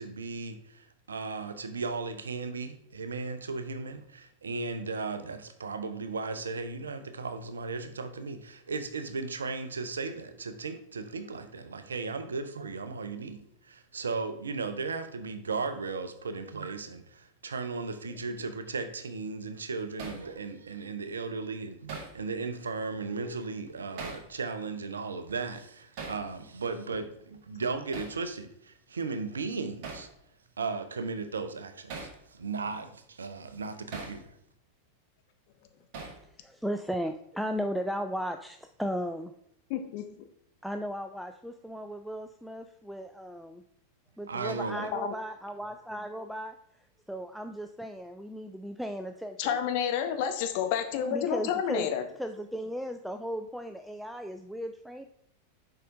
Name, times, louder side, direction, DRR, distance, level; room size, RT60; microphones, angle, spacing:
voice 1, 0.0-30.1 30.6-34.3 44.3-44.9, right 4 dB, 70° right, 0.6 m, -36 dB
Hammer, 20.0-20.3 21.9-22.2 24.0-24.3 26.0-26.2 27.9-28.2 29.8-30.1 31.9-32.2 33.9-34.2 35.9-36.2, right 4 dB, 45° right, 1.5 m, -40 dB
voice 2, 36.2-39.3 40.6-43.6 44.2-49.6 51.1-51.9 52.2-55.1, equal, ahead, 0.3 m, -36 dB
voice 3, 39.7-40.2 44.9-45.1 49.4-52.0, left 8 dB, 50° left, 0.8 m, -30 dB
6.7 x 4.8 x 3.6 m
figure-of-eight pair, 90°, 0 cm